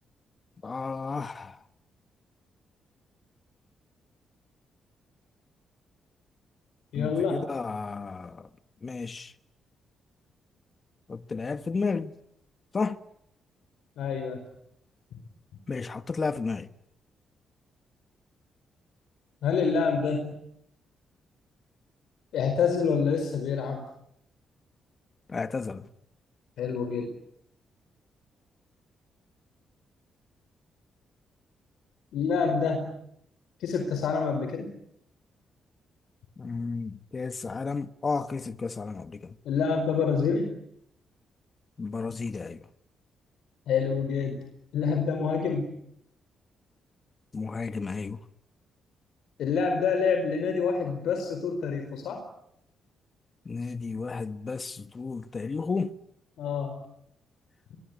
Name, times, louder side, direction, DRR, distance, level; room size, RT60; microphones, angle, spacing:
voice 1, 0.6-1.5 6.9-8.5 8.8-9.3 11.1-12.1 12.7-13.0 15.7-16.7 25.3-25.9 36.4-39.2 41.8-42.6 47.3-48.2 53.5-55.9, left 4 dB, 35° left, 1.3 m, -32 dB
voice 2, 6.9-7.4 14.0-14.4 19.4-20.4 22.3-23.8 26.6-27.1 32.1-32.9 33.6-34.7 39.4-40.6 43.7-44.4 44.7-45.7 49.4-52.2 56.4-56.7, left 5 dB, 80° left, 4.7 m, -27 dB
25.0 x 22.0 x 9.7 m
cardioid pair, 100°, 0 cm